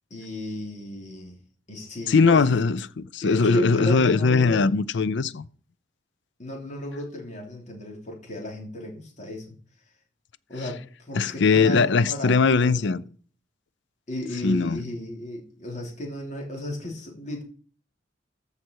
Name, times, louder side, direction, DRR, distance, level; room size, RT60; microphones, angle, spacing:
voice 1, 0.1-1.4 1.7-2.6 3.2-4.7 6.4-9.6 10.5-13.0 14.1-17.4, left 1 dB, 40° left, 3.3 m, -34 dB
voice 2, 2.1-5.4 11.2-13.0 14.4-14.8, left 4 dB, 65° left, 0.5 m, -20 dB
14.0 x 5.7 x 4.7 m
head